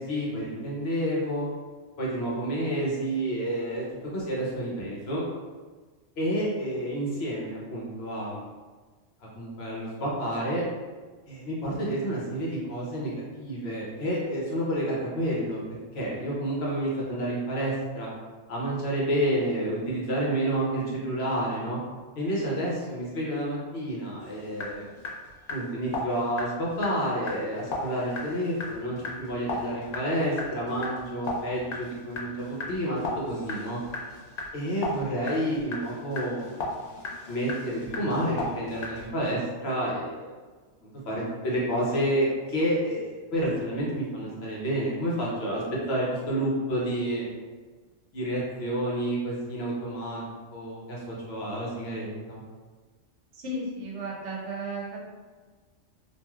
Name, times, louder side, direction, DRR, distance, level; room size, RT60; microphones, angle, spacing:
voice 1, 0.0-1.5 2.0-3.9 4.1-5.2 6.2-8.5 9.4-10.6 11.3-15.6 15.9-18.1 18.5-21.8 22.2-24.8 25.5-33.0 33.3-33.8 34.5-36.5 37.3-40.3 41.0-45.6 45.9-47.3 48.1-50.2 50.5-52.4, right 1 dB, 60° left, -5 dB, 0.9 m, -29 dB
sound 1, 24.2-39.1, left 2 dB, 85° left, 1.0 m, -37 dB
voice 2, 53.3-55.0, right 1 dB, 70° right, -2 dB, 0.9 m, -34 dB
3.0 x 2.5 x 2.3 m, 1.4 s
omnidirectional pair, 1.3 m